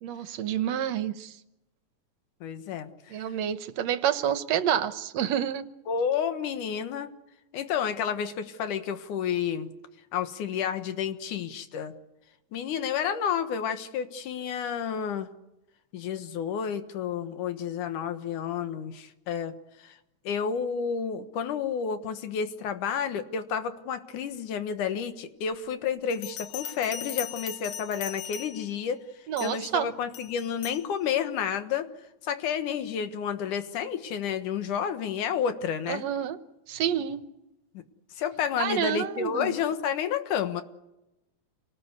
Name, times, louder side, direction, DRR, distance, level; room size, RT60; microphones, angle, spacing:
voice 1, 0.0-1.3 3.1-5.7 29.3-29.9 35.9-36.4 36.7-37.2 38.6-39.5, right 9 dB, 70° right, 12 dB, 2.1 m, -28 dB
voice 2, 2.4-3.2 5.9-7.1 7.5-9.7 10.1-11.9 12.5-15.3 15.9-20.0 20.2-29.0 29.4-31.9 32.2-36.0 38.2-40.6, left 7 dB, 85° left, 9 dB, 3.0 m, -30 dB
Bell, 26.1-28.8 29.4-29.7 30.1-30.9, left 8 dB, 55° left, 2.0 m, -39 dB
28.0 x 19.0 x 8.2 m, 0.95 s
omnidirectional pair, 3.4 m